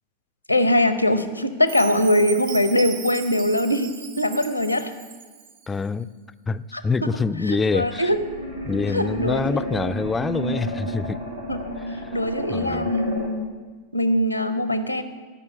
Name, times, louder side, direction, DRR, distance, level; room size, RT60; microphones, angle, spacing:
voice 1, 0.5-4.9 6.7-7.1 7.4-8.2 8.9-9.7 11.5-11.6 11.9-13.5 13.9-15.0, left 1 dB, 85° left, 11 dB, 0.7 m, -22 dB
Chime, 1.7-5.7, right 9 dB, 50° right, 1.0 m, -38 dB
voice 2, 5.7-6.1 6.5-8.1 8.7-11.2 12.0-12.1 12.5-12.9, left 4 dB, 15° left, 14 dB, 0.3 m, -25 dB
sound 1, 7.6-13.3, right 1 dB, 85° right, 1.8 m, -31 dB
14.0 x 5.7 x 8.0 m, 1.4 s
figure-of-eight pair, 90°, 0 cm